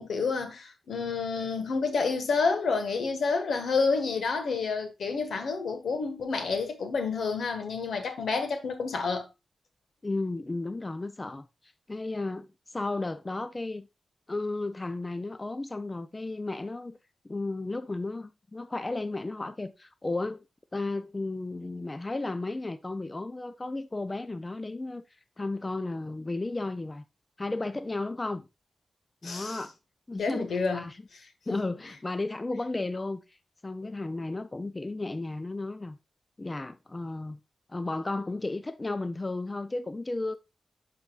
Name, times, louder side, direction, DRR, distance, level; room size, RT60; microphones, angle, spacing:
voice 1, 0.0-9.3 29.2-29.6 30.2-30.9, left 4 dB, 85° left, 1.4 m, -29 dB
voice 2, 10.0-13.9 14.3-17.0 17.2-20.4 20.7-25.0 25.4-27.0 27.4-28.5 29.2-29.7 30.1-31.0 31.5-33.4 33.6-36.0 36.4-37.4 37.7-40.4, left 2 dB, 25° left, 0.4 m, -34 dB
11.5 x 4.1 x 2.4 m
wide cardioid pair, 90°, 0 cm